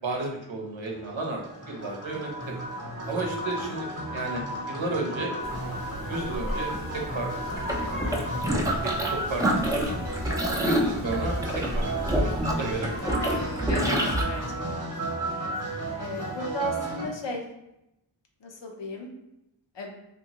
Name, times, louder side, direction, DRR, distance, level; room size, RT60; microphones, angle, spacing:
voice 1, 0.0-1.4 1.7-2.5 3.1-3.9 4.1-4.4 4.7-5.3 6.0-7.5 8.0-8.2 8.8-9.9 10.6-11.9 12.1-13.1, right 2 dB, 75° right, 0 dB, 0.7 m, -33 dB
sound 1, 0.8-17.0, right 1 dB, 30° right, 0.9 m, -34 dB
sound 2, 5.4-14.9, left 1 dB, 25° left, 0.7 m, -37 dB
sound 3, 7.6-9.1 9.4-14.2, right 1 dB, 10° right, 0.4 m, -27 dB
voice 2, 16.0-17.4 18.4-19.1 19.7-19.9, left 1 dB, 65° left, 1 dB, 0.6 m, -34 dB
2.8 x 2.3 x 2.8 m, 0.87 s
wide cardioid pair, 45°, 47 cm